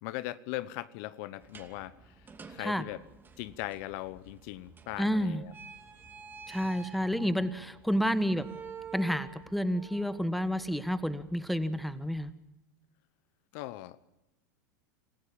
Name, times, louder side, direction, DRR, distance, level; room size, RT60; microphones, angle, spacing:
voice 1, 0.0-3.0 3.4-5.5 13.5-14.0, left 17 dB, 55° left, 17 dB, 1.1 m, -39 dB
sound 1, 1.4-12.3, right 6 dB, 20° right, 2.6 m, -50 dB
voice 2, 5.0-5.4 6.5-8.5 8.9-12.3, equal, ahead, 14 dB, 1.4 m, -30 dB
27.5 x 15.0 x 8.7 m, 0.93 s
hypercardioid pair, 100°, 10 cm